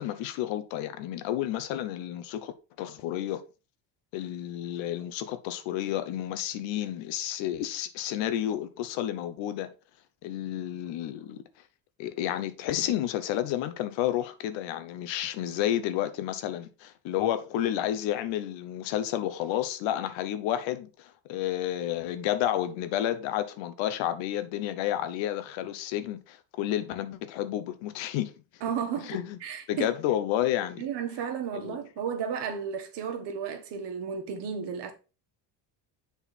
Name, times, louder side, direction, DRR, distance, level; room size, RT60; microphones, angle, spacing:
voice 1, 0.0-2.5 2.8-3.4 4.1-9.7 10.2-11.4 12.0-28.3 29.0-29.4 29.7-30.8 31.5-31.8, left 12 dB, 80° left, 1.0 m, -31 dB
voice 2, 28.6-29.9 30.8-34.9, right 7 dB, 65° right, 1.7 m, -33 dB
7.2 x 4.1 x 4.1 m
cardioid pair, 105°, 44 cm